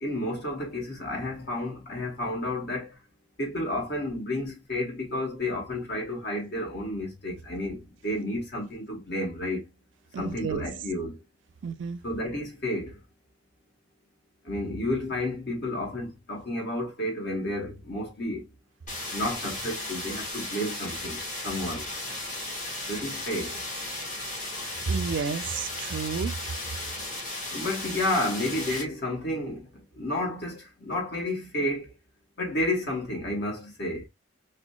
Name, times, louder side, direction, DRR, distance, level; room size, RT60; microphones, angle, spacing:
voice 1, 0.0-2.9 3.4-9.6 10.2-11.1 12.0-13.0 14.4-18.4 19.1-21.8 22.9-23.6 27.5-29.7 29.9-31.9 32.4-34.1, left 1 dB, 55° left, 1.5 m, -31 dB
voice 2, 10.1-10.6 11.6-12.0 24.9-26.3, right 5 dB, 70° right, 0.4 m, -30 dB
sound 1, 18.9-28.8, left 2 dB, 40° left, 1.7 m, -35 dB
4.8 x 2.3 x 2.2 m
head